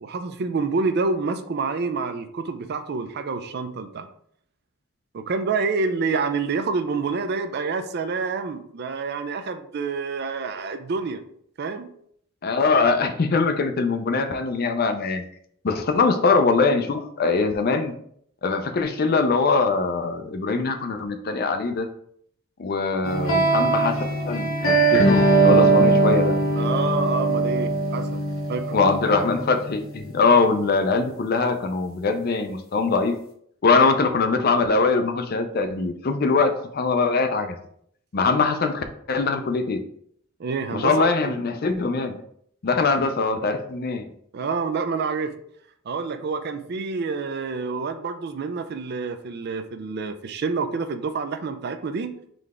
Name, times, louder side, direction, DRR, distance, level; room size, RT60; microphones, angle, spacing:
voice 1, 0.0-4.1 5.1-11.2 11.6-11.9 16.1-16.2 26.6-28.2 28.5-28.7 40.4-41.3 44.3-45.4 45.9-52.2, right 4 dB, 50° right, 9 dB, 0.4 m, -27 dB
voice 2, 12.4-15.2 15.6-17.9 18.4-21.9 22.6-24.0 24.3-26.4 28.7-33.1 33.6-37.6 38.1-39.8 40.7-42.2 42.6-44.0, left 4 dB, 45° left, 7 dB, 0.5 m, -22 dB
sound 1, 23.0-30.1, right 2 dB, 85° left, 1.0 m, -20 dB
3.9 x 3.2 x 3.5 m, 0.67 s
head